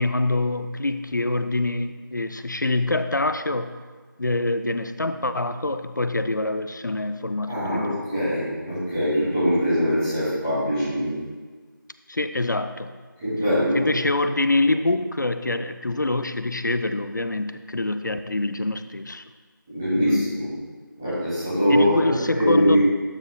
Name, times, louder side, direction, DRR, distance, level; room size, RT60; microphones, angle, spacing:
voice 1, 0.0-3.8 4.2-8.0 12.1-12.9 13.7-19.2 19.9-20.4 21.7-22.8, left 2 dB, 60° left, 10 dB, 0.4 m, -25 dB
voice 2, 7.4-11.1 13.2-13.8 19.7-20.5 21.0-22.8, equal, 5° right, -17 dB, 2.5 m, -22 dB
12.0 x 6.6 x 2.3 m, 1.5 s
figure-of-eight pair, 175°, 11 cm